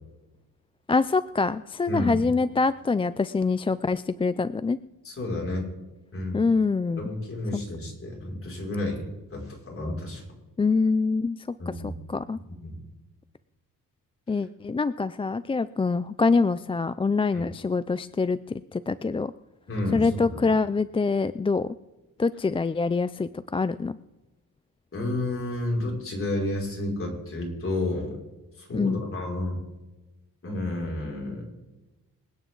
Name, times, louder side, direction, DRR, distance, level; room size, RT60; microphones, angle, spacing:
voice 1, 0.9-4.8 6.3-7.0 10.6-12.4 14.3-18.4 18.7-19.3 19.9-21.7 22.2-24.0 28.7-29.0, left 4 dB, 15° left, 14 dB, 0.4 m, -25 dB
voice 2, 1.9-2.2 5.0-5.7 6.1-6.4 7.0-9.0 9.3-10.2 11.6-11.9 12.6-12.8 17.3-17.4 19.7-20.4 24.9-28.2 28.6-29.6 30.4-31.4, left 1 dB, 40° left, -2 dB, 5.9 m, -31 dB
26.0 x 9.4 x 3.9 m, 1.1 s
cardioid pair, 110°, 35 cm